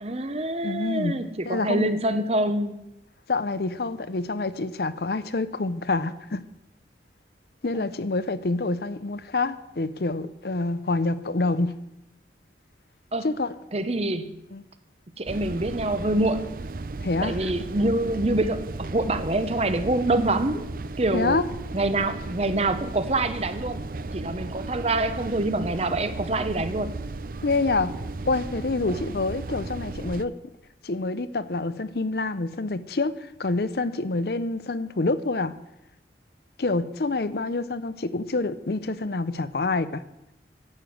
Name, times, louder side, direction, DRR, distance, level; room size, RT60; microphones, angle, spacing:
voice 1, 0.0-2.8 7.7-7.8 13.1-13.3 13.7-14.3 15.2-16.5 17.2-20.7 21.0-21.4 21.7-23.8 24.1-27.0, right 2 dB, 35° right, 11 dB, 0.9 m, -25 dB
voice 2, 0.6-1.2 1.5-1.9 3.3-6.4 7.6-11.8 13.2-13.5 14.5-14.6 17.0-17.7 21.1-21.4 27.4-28.0 28.3-30.3 30.8-35.6 36.6-40.0, left 3 dB, 60° left, 14 dB, 0.7 m, -27 dB
sound 1, 15.3-30.3, right 3 dB, 50° right, 0.6 m, -35 dB
11.5 x 9.0 x 7.7 m, 0.88 s
head